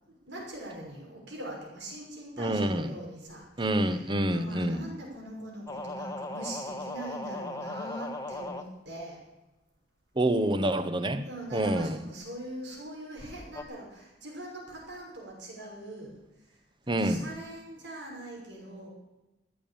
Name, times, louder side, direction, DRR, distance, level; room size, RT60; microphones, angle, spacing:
voice 1, 0.1-9.2 11.3-16.1 17.0-18.9, right 1 dB, 85° right, -1 dB, 6.1 m, -42 dB
voice 2, 2.4-2.9 3.6-4.8 10.2-11.2 11.5-12.0 16.9-17.2, right 1 dB, 25° right, 10 dB, 1.1 m, -27 dB
sound 1, 5.7-8.7 13.5-13.6, left 2 dB, 20° left, 1.1 m, -37 dB
14.5 x 9.3 x 8.8 m, 1.0 s
head